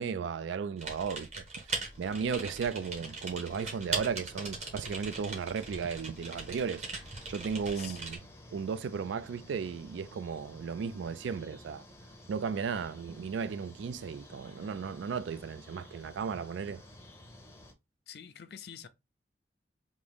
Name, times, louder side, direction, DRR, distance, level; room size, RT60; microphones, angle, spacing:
voice 1, 0.0-1.4 2.0-6.8 7.3-8.2 8.5-11.8 12.3-16.8, right 6 dB, 85° right, 0.3 m, -35 dB
Typing, 0.8-8.2, right 3 dB, 40° right, 1.1 m, -40 dB
sound 1, 1.9-17.7, left 1 dB, 15° left, 0.6 m, -53 dB
voice 2, 18.1-18.9, left 9 dB, 60° left, 0.4 m, -46 dB
3.7 x 2.6 x 3.4 m
head